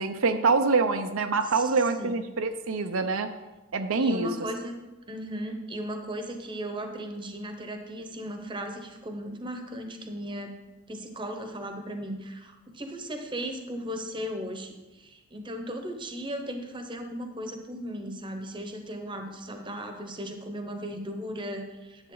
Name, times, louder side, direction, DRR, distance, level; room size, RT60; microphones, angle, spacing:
voice 1, 0.0-3.3 3.7-4.3, right 4 dB, 75° right, 7 dB, 0.6 m, -25 dB
voice 2, 1.4-2.2 4.0-4.7 5.1-10.5 10.9-22.1, equal, 20° right, 5 dB, 0.9 m, -36 dB
10.5 x 8.0 x 3.9 m, 1.1 s
head